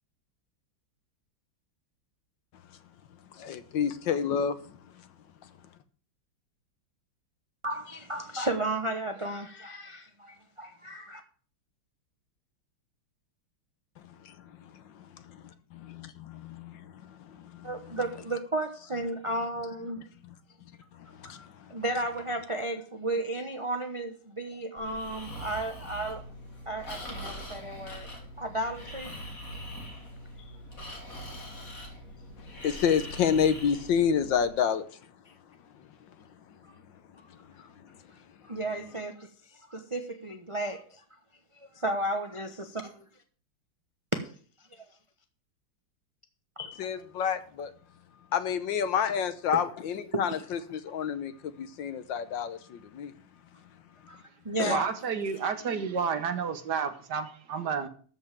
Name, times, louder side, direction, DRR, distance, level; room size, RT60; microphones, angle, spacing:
voice 1, 3.3-4.8 14.0-17.9 21.2-21.4 32.6-34.9 46.8-47.7 48.3-53.1 54.6-54.8, left 7 dB, 70° left, 1.5 m, -29 dB
voice 2, 7.6-11.2 17.6-20.0 21.2-26.2 26.7-28.1 28.4-29.1 30.4-30.5 37.2-37.3 38.4-41.0 41.5-43.0 44.1-44.2 44.7-44.9 46.6-46.8 49.5-49.6 50.1-50.4 54.1-54.2 54.4-54.9, right 1 dB, 25° right, 0.7 m, -34 dB
Breathing, 24.8-34.5, equal, 40° left, 3.5 m, -42 dB
voice 3, 54.7-57.9, right 6 dB, 60° right, 1.7 m, -30 dB
13.5 x 5.6 x 7.3 m
omnidirectional pair, 2.2 m